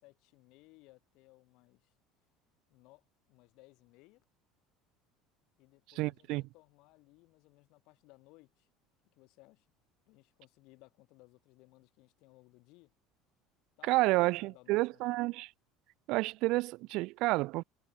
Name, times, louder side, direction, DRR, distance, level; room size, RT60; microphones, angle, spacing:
voice 1, 0.0-1.9 2.7-4.2 5.6-8.7 9.1-9.7 10.1-12.9 13.8-15.2, left 23 dB, 70° left, 7.4 m, -62 dB
voice 2, 6.0-6.4 13.8-15.5 16.1-17.6, right 21 dB, 65° right, 0.4 m, -30 dB
supercardioid pair, 115°, 0 cm